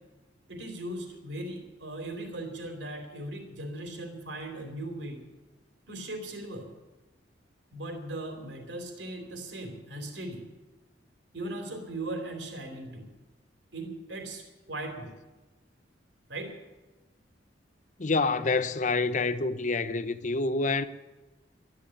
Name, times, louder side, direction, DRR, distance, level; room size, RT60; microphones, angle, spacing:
voice 1, 0.5-5.2 5.9-6.7 7.7-10.4 11.3-13.1 13.7-15.1 16.3-16.6, right 1 dB, 70° right, 3.0 m, -38 dB
voice 2, 18.0-20.8, left 3 dB, 40° left, 0.8 m, -27 dB
13.0 x 10.5 x 9.8 m
head